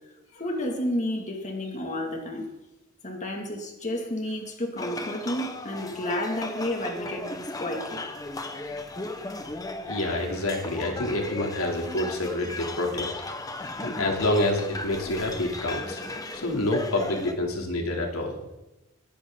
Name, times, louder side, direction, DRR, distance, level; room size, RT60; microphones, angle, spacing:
voice 1, 0.4-2.5 3.0-8.0 13.6-13.7, left 1 dB, 35° left, 2 dB, 2.5 m, -31 dB
sound 1, 4.8-17.3, left 2 dB, 15° left, 1.2 m, -36 dB
voice 2, 9.9-13.1 13.8-18.4, left 1 dB, 85° left, 1 dB, 3.2 m, -28 dB
21.0 x 15.0 x 4.0 m, 0.98 s
head